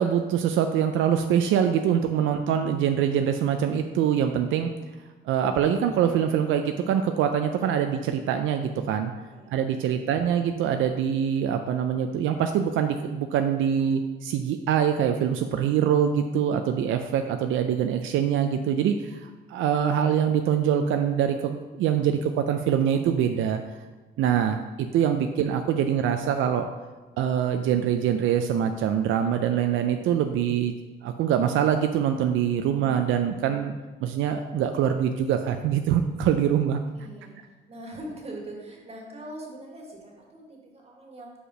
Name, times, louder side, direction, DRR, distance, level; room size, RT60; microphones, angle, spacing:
voice 1, 0.0-4.7 5.3-9.1 9.5-23.6 24.2-26.6 27.2-30.7 31.0-33.7 34.0-36.8, right 9 dB, 80° right, 6 dB, 0.4 m, -24 dB
voice 2, 9.3-10.0 32.6-32.9 36.9-37.4 37.7-41.3, right 1 dB, 30° right, -1 dB, 1.7 m, -42 dB
5.1 x 4.9 x 4.8 m, 1.2 s
cardioid pair, 90°, 20 cm